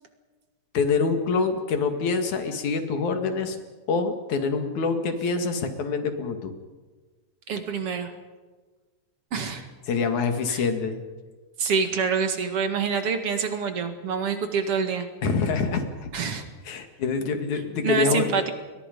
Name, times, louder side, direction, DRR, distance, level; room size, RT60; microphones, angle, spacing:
voice 1, 0.7-3.6 3.9-6.5 9.9-11.0 15.2-16.1 16.7-18.4, left 4 dB, 75° left, 6 dB, 3.4 m, -25 dB
voice 2, 7.5-8.1 9.3-9.7 10.5-10.6 11.6-15.1 16.1-16.4 17.8-18.5, right 6 dB, 50° right, 7 dB, 2.6 m, -26 dB
29.5 x 22.0 x 5.3 m, 1.3 s
omnidirectional pair, 3.5 m